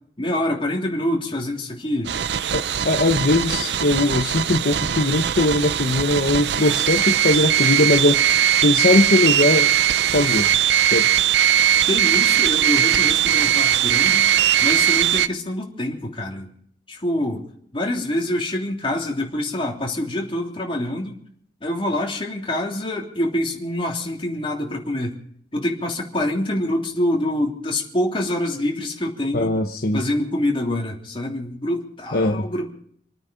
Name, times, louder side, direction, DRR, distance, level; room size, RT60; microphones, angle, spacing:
voice 1, 0.2-2.1 11.9-14.3 14.6-16.5 16.9-17.4 17.7-21.2 21.6-25.2 25.5-29.5 29.9-32.7, left 1 dB, 30° left, 0 dB, 3.1 m, -25 dB
sound 1, 2.1-15.3, right 10 dB, 70° right, 0.6 m, -19 dB
voice 2, 2.5-8.2 8.6-9.7 10.1-10.5 10.8-11.1 29.3-30.0 32.1-32.5, left 2 dB, 55° left, 4 dB, 1.1 m, -20 dB
28.0 x 9.5 x 5.3 m, 0.64 s
head